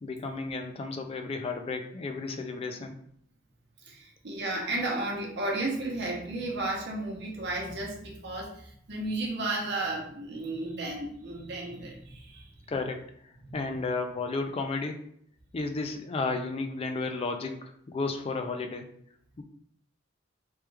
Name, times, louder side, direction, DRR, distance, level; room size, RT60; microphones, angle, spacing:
voice 1, 0.0-3.0 12.7-13.0 13.5-15.0 15.5-18.9 19.4-19.5, left 3 dB, 30° left, 5 dB, 0.3 m, -33 dB
voice 2, 3.8-12.5 13.4-13.6, right 2 dB, 60° right, -1 dB, 0.8 m, -33 dB
3.1 x 2.3 x 3.3 m, 0.66 s
head